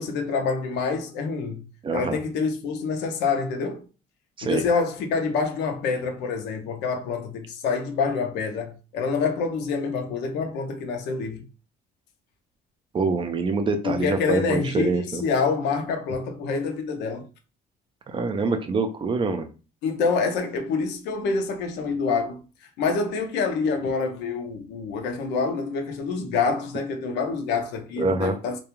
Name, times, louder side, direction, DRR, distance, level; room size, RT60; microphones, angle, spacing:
voice 1, 0.0-1.6 1.9-3.8 4.4-11.4 13.8-17.3 19.8-22.4 22.8-28.6, left 4 dB, 85° left, 0.6 m, -26 dB
voice 2, 1.8-2.2 4.4-4.6 12.9-15.2 18.1-19.5 28.0-28.4, right 3 dB, 30° right, 0.4 m, -25 dB
2.4 x 2.2 x 3.0 m
cardioid pair, 110°, 17 cm